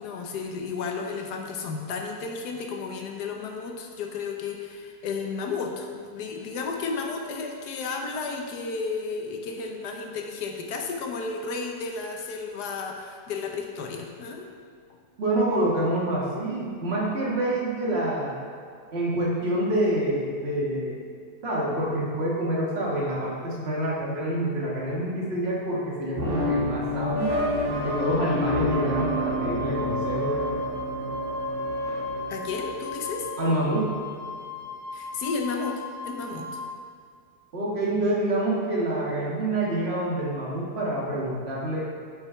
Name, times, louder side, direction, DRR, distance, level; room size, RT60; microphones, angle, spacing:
voice 1, 0.0-14.5 14.9-15.0 32.3-33.3 34.9-36.6, left 4 dB, 70° left, 2 dB, 1.4 m, -33 dB
voice 2, 15.2-18.3 18.9-21.0 21.4-27.3 27.7-30.3 33.4-33.9 37.5-41.8, right 1 dB, 35° right, -5 dB, 1.9 m, -27 dB
sound 1, 26.2-33.5, left 1 dB, 85° right, 2.9 m, -28 dB
Wind instrument woodwind instrument, 27.6-36.6, left 3 dB, 60° right, 2.2 m, -38 dB
8.3 x 5.5 x 5.6 m, 2.2 s
omnidirectional pair, 1.9 m